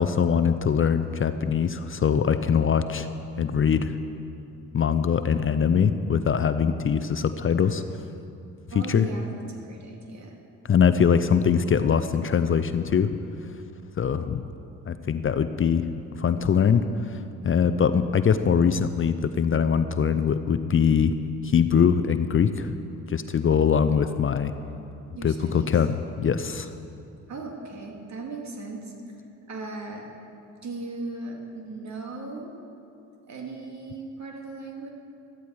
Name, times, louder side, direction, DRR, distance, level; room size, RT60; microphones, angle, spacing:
voice 1, 0.0-3.1 3.4-4.0 4.7-7.8 8.7-9.1 10.7-13.1 14.0-14.4 14.9-21.1 21.4-22.8 23.1-24.5 25.2-25.9 26.2-26.7, left 7 dB, 35° left, 11 dB, 0.6 m, -22 dB
voice 2, 8.7-10.4 25.1-25.7 27.3-28.9 29.5-30.1 30.6-32.5 33.3-34.9, right 3 dB, 55° right, 1 dB, 2.6 m, -37 dB
14.0 x 13.0 x 4.8 m, 2.6 s
supercardioid pair, 65°, 35 cm